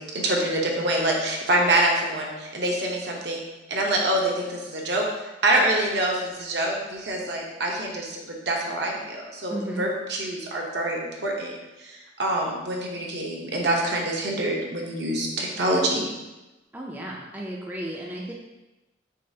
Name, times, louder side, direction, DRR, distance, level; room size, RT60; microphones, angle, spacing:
voice 1, 0.0-3.4 3.7-5.1 5.4-8.2 8.5-11.5 11.8-16.1, right 1 dB, 65° right, -1 dB, 0.8 m, -25 dB
voice 2, 9.5-9.9 16.7-18.3, right 1 dB, 10° right, -2 dB, 0.4 m, -34 dB
6.4 x 2.4 x 2.7 m, 1.1 s
head